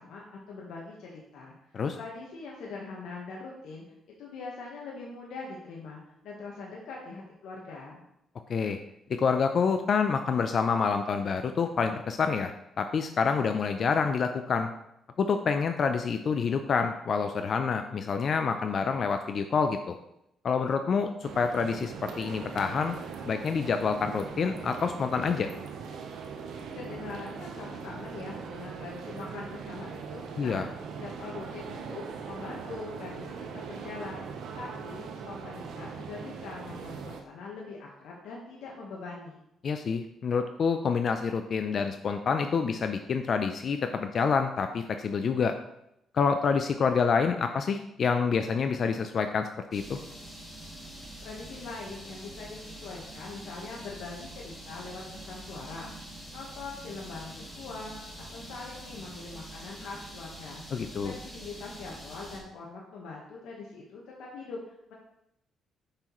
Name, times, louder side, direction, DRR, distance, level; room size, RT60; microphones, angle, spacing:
voice 1, 0.0-1.5 1.9-3.8 4.2-8.0 26.7-30.6 31.0-33.2 33.5-39.4 51.2-60.6 61.0-64.9, left 3 dB, 80° left, -3 dB, 1.2 m, -42 dB
voice 2, 9.1-12.5 12.8-14.7 15.2-20.0 20.4-23.0 23.2-25.5 30.4-30.7 39.6-45.6 46.1-50.0 60.7-61.1, left 5 dB, 55° left, 7 dB, 0.4 m, -27 dB
sound 1, 21.2-37.2, right 6 dB, 80° right, 0.8 m, -40 dB
sound 2, 49.7-62.4, right 1 dB, 10° left, 2.4 m, -45 dB
6.5 x 5.8 x 3.0 m, 0.81 s
cardioid pair, 90°, 0 cm